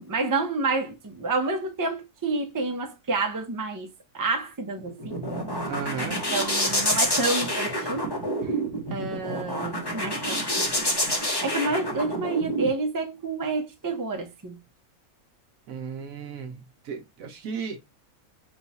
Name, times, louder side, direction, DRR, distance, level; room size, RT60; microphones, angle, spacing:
voice 1, 0.0-3.9 4.1-5.2 6.3-8.1 8.4-8.5 8.9-10.7 11.2-14.6, right 3 dB, 25° right, 0.4 m, -29 dB
sound 1, 4.8-12.7, equal, 20° left, 0.8 m, -28 dB
voice 2, 5.7-6.2 15.7-17.8, right 6 dB, 70° right, 1.1 m, -35 dB
4.5 x 2.3 x 4.1 m
omnidirectional pair, 1.5 m